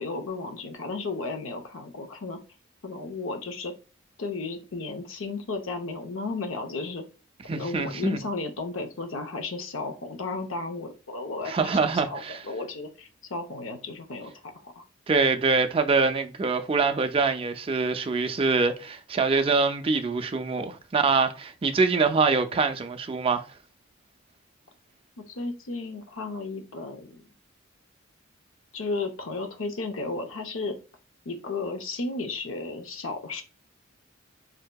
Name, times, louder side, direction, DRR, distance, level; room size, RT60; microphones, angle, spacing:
voice 1, 0.0-2.4 2.8-3.7 4.2-7.0 7.5-11.8 12.0-14.8 25.2-27.3 28.7-30.8 31.3-33.4, left 3 dB, 75° left, 0.6 m, -34 dB
voice 2, 7.5-8.2 11.5-12.4 15.1-23.5, right 4 dB, 25° right, 0.4 m, -24 dB
4.2 x 2.7 x 2.2 m
head